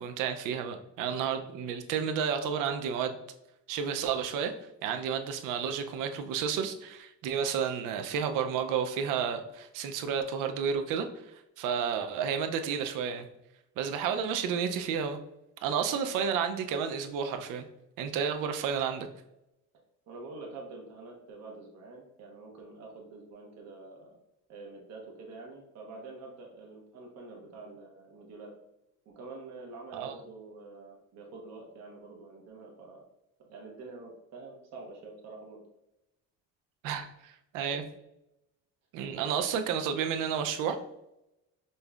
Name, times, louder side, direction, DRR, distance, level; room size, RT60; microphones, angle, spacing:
voice 1, 0.0-3.1 3.7-4.5 4.8-11.1 11.6-13.3 13.8-15.2 15.6-17.6 18.0-19.1 29.9-30.2 36.8-37.8 38.9-40.8, right 7 dB, 85° right, 6 dB, 0.5 m, -31 dB
voice 2, 20.1-24.1 24.5-28.5 29.1-33.0 33.4-35.6 39.1-39.3, right 3 dB, 55° right, 0 dB, 0.8 m, -47 dB
5.3 x 2.1 x 2.3 m, 0.87 s
cardioid pair, 165°, 31 cm